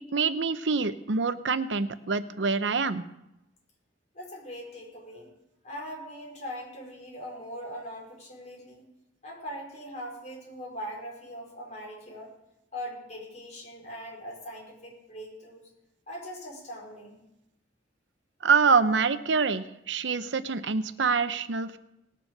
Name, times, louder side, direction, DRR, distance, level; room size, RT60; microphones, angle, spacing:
voice 1, 0.1-3.0 18.4-21.8, right 5 dB, 85° right, 12 dB, 0.8 m, -25 dB
voice 2, 4.1-5.3 5.6-8.9 9.2-12.3 12.7-15.7 16.1-17.3, equal, 40° left, -3 dB, 5.0 m, -41 dB
19.0 x 7.6 x 6.6 m, 0.89 s
head